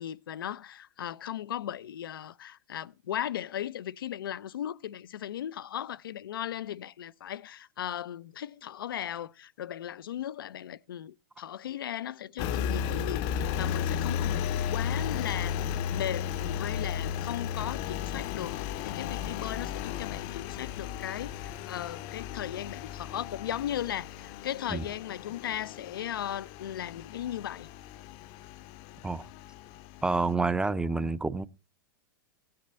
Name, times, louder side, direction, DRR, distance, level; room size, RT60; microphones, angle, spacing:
voice 1, 0.0-27.7, left 11 dB, 80° left, 0.6 m, -37 dB
Engine, 12.4-30.3, left 8 dB, 50° left, 0.7 m, -34 dB
voice 2, 30.0-31.5, right 3 dB, 5° right, 0.6 m, -28 dB
16.0 x 7.8 x 4.2 m
hypercardioid pair, 110°, 12 cm